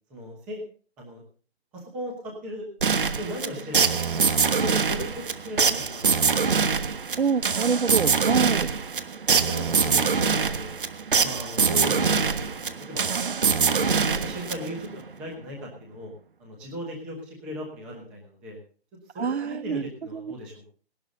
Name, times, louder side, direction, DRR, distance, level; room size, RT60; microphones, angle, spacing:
voice 1, 0.1-0.6 1.0-1.2 1.9-2.7 3.0-4.0 4.3-6.1 9.3-10.7 11.2-13.3 13.7-16.1 16.4-18.6 19.1-20.7, equal, 5° right, 0 dB, 1.0 m, -37 dB
sound 1, 2.8-14.9, right 5 dB, 50° right, 1.3 m, -24 dB
voice 2, 7.2-8.7 19.2-20.3, right 6 dB, 75° right, 18 dB, 0.8 m, -26 dB
18.5 x 12.0 x 3.9 m, 0.40 s
hypercardioid pair, 175°, 33 cm